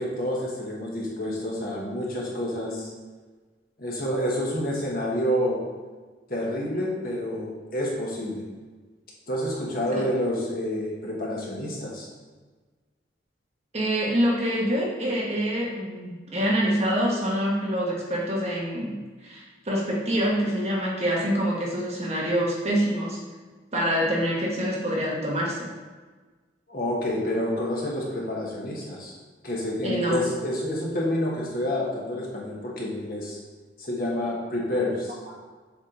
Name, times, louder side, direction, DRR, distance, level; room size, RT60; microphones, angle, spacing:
voice 1, 0.0-2.9 3.8-5.6 6.3-8.4 9.3-12.1 26.7-29.1 29.4-33.4 33.8-35.2, left 1 dB, 50° left, -3 dB, 1.3 m, -28 dB
voice 2, 13.7-19.0 19.2-23.2 23.7-25.7 29.8-30.3, equal, 35° right, -4 dB, 1.2 m, -26 dB
7.2 x 3.7 x 3.9 m, 1.3 s
head